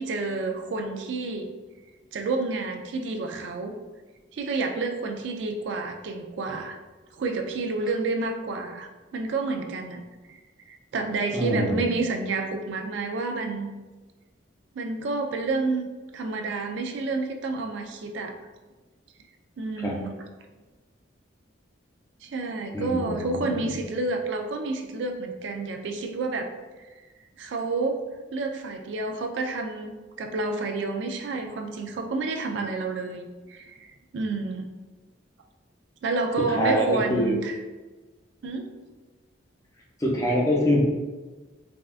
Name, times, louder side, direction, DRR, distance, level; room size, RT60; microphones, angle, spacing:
voice 1, 0.0-1.5 2.1-3.7 4.3-6.8 7.1-10.0 10.3-10.4 10.7-13.7 14.8-15.9 16.1-18.3 19.6-20.1 22.2-26.5 27.4-28.0 28.3-34.7 36.0-37.6 38.4-38.7, right 3 dB, 65° right, 4 dB, 0.4 m, -29 dB
voice 2, 11.3-11.9 19.8-20.0 22.7-23.7 36.5-37.3 40.0-40.8, left 1 dB, 20° left, -3 dB, 0.5 m, -25 dB
3.5 x 2.3 x 2.4 m, 1.3 s
head